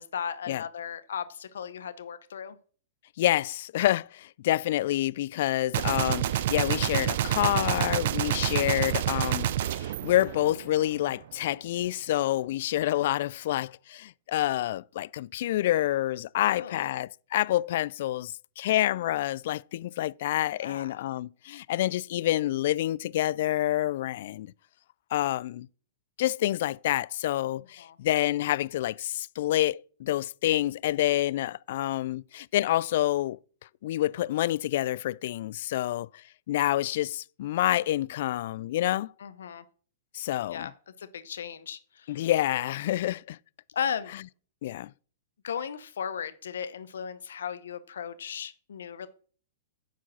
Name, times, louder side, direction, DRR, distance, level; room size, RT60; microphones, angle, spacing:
voice 1, 0.0-2.6 16.5-16.9 20.5-21.0 27.8-27.9 39.2-39.6 40.5-40.7 41.0-42.3 43.7-44.1 45.4-49.1, left 7 dB, 75° left, 0.8 m, -36 dB
voice 2, 3.2-24.5 25.1-25.7 26.2-33.4 33.8-39.1 40.1-40.7 42.1-43.4 44.6-44.9, left 14 dB, 60° left, 0.3 m, -28 dB
Gunshot gunfire, 5.7-11.0, right 12 dB, 60° right, 0.5 m, -28 dB
10.0 x 4.7 x 6.0 m
hypercardioid pair, 115°, 0 cm